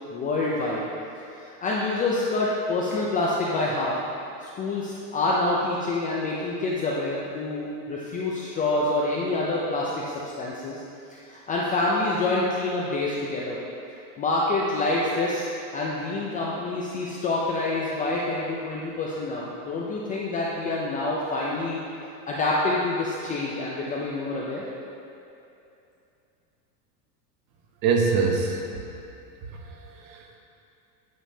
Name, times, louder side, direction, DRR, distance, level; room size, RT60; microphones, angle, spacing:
voice 1, 0.1-0.8 1.4-3.9 4.4-10.8 11.3-13.6 14.2-21.8 22.3-24.6, left 2 dB, 20° left, -5 dB, 0.3 m, -27 dB
voice 2, 27.8-28.6 29.5-30.4, right 5 dB, 50° right, 1 dB, 1.1 m, -25 dB
9.1 x 6.3 x 2.7 m, 2.7 s
supercardioid pair, 130°, 48 cm